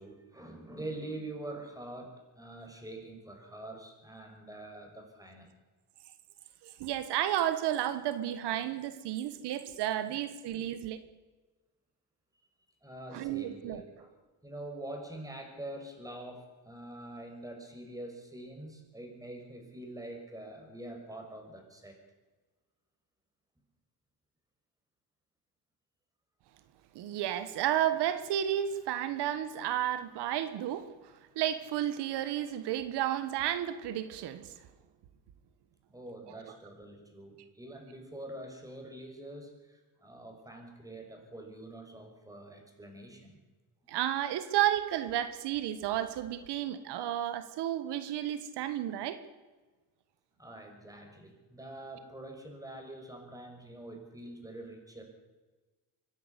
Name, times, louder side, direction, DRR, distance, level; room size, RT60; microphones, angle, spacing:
voice 1, 0.0-5.5 12.8-14.1 14.4-22.0 35.9-43.4 50.4-55.0, right 1 dB, 10° right, 3 dB, 5.9 m, -45 dB
voice 2, 6.6-11.0 13.1-13.8 26.9-30.9 31.3-34.5 43.9-49.2, right 11 dB, 90° right, 11 dB, 1.6 m, -32 dB
25.0 x 11.0 x 9.9 m, 1.3 s
cardioid pair, 110°, 39 cm